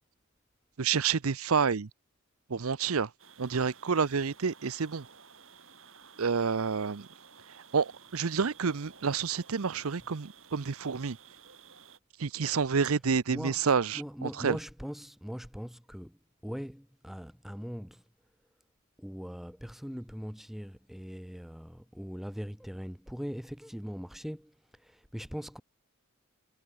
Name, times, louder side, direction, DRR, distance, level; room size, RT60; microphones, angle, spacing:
voice 1, 0.8-1.9 2.5-3.1 3.4-5.1 6.2-7.1 7.5-11.2 12.2-14.6, right 5 dB, 80° right, 0.7 m, -29 dB
sound 1, 3.2-12.0, right 6 dB, 65° right, 7.2 m, -55 dB
voice 2, 13.9-16.2 16.4-18.0 19.0-25.6, equal, ahead, 1.1 m, -41 dB
head